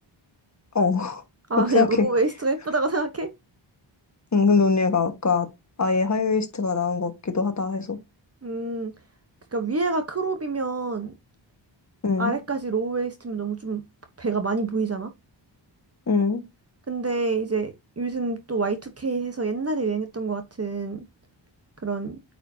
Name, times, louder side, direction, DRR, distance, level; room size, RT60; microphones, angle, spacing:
voice 1, 0.7-1.2 1.6-2.1 4.3-5.5 5.8-8.0 12.0-12.4 16.1-16.4, left 4 dB, 35° left, 1.5 m, -22 dB
voice 2, 1.5-3.3 8.4-8.9 9.5-11.1 12.2-13.8 14.2-15.1 16.9-21.0 21.8-22.2, right 3 dB, 30° right, 1.0 m, -27 dB
9.0 x 4.8 x 2.8 m
wide cardioid pair, 125°, 46 cm